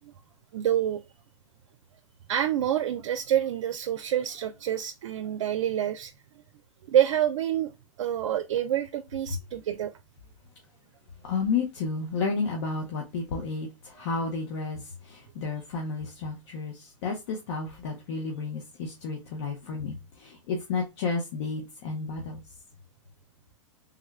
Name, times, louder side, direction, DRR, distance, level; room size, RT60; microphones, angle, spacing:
voice 1, 0.5-1.0 2.3-6.1 6.9-7.7 8.0-9.9, right 10 dB, 70° right, 0.4 m, -27 dB
voice 2, 11.2-22.4, left 4 dB, 60° left, 1.0 m, -32 dB
3.6 x 2.3 x 3.1 m
hypercardioid pair, 115°, 16 cm